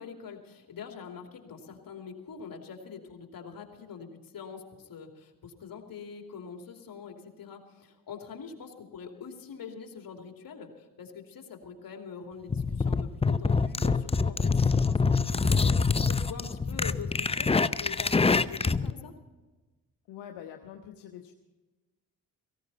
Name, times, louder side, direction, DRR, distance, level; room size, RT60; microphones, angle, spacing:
voice 1, 0.0-19.1, left 6 dB, 55° left, 3 dB, 2.9 m, -44 dB
sound 1, 12.5-18.9, left 4 dB, 15° left, 0.6 m, -25 dB
voice 2, 20.1-21.3, left 9 dB, 75° left, 4 dB, 1.1 m, -45 dB
17.5 x 16.0 x 4.2 m, 1.2 s
supercardioid pair, 50°, 40 cm